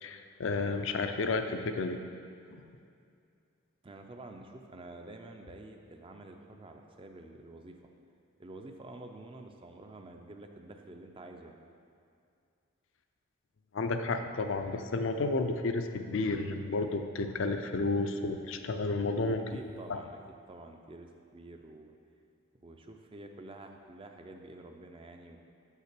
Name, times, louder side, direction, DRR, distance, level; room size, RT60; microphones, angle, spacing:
voice 1, 0.0-2.0 2.5-2.6 13.7-19.4 19.9-20.0, left 3 dB, 60° left, 7 dB, 0.5 m, -31 dB
voice 2, 3.8-7.8 8.4-11.6 19.5-20.2 20.5-21.9 22.6-25.4, right 2 dB, 25° right, 4 dB, 0.4 m, -49 dB
6.4 x 5.6 x 6.0 m, 2.4 s
head